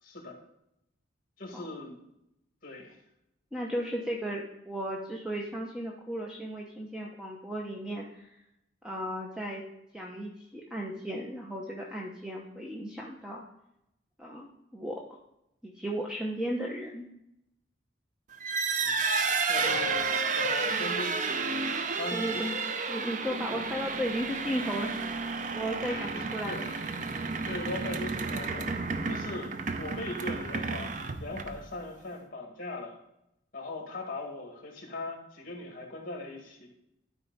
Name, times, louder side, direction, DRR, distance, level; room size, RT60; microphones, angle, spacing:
voice 1, 0.0-0.4 1.4-1.9 2.6-3.0 18.8-19.0 19.5-22.7 25.8-27.1 27.5-28.7 29.1-33.0 33.5-36.7, left 2 dB, 45° left, 0 dB, 2.2 m, -40 dB
voice 2, 3.5-8.4 8.8-9.6 9.9-13.4 14.2-15.2 15.6-17.1 22.1-22.5 22.9-24.9 25.5-26.6, equal, 5° right, -2 dB, 0.8 m, -35 dB
sound 1, 18.3-31.7, right 4 dB, 40° right, 0.5 m, -31 dB
12.0 x 4.8 x 4.1 m, 0.82 s
head